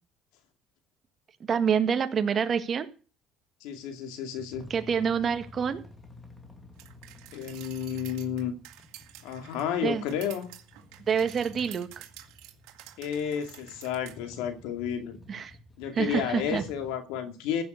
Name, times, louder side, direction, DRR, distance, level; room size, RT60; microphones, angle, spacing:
voice 1, 1.5-2.9 4.7-5.8 9.8-10.0 11.1-12.1 15.3-15.5 15.9-16.6, right 7 dB, 35° right, 1.6 m, -27 dB
voice 2, 3.6-4.7 7.3-8.5 9.2-10.5 13.0-15.2 15.8-17.6, left 8 dB, 85° left, 2.4 m, -32 dB
sound 1, 4.5-17.0, left 2 dB, 15° left, 2.4 m, -51 dB
sound 2, 6.8-14.2, right 14 dB, 80° right, 2.3 m, -50 dB
15.5 x 7.2 x 8.0 m
cardioid pair, 130°, 0 cm